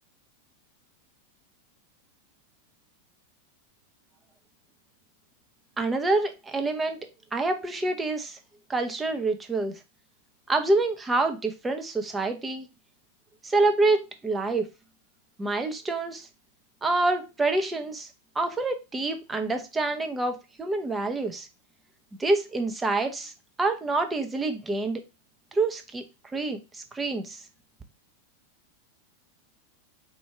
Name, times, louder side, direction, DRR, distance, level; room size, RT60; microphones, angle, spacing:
voice 1, 5.8-7.0 7.3-8.4 8.7-9.8 10.5-12.6 13.4-14.7 15.4-16.3 16.8-18.1 18.3-21.5 22.2-23.3 23.6-25.0 25.5-26.0 26.3-27.4, right 2 dB, 15° right, 6 dB, 0.8 m, -27 dB
4.6 x 2.6 x 3.3 m, 0.27 s
figure-of-eight pair, 90°, 0 cm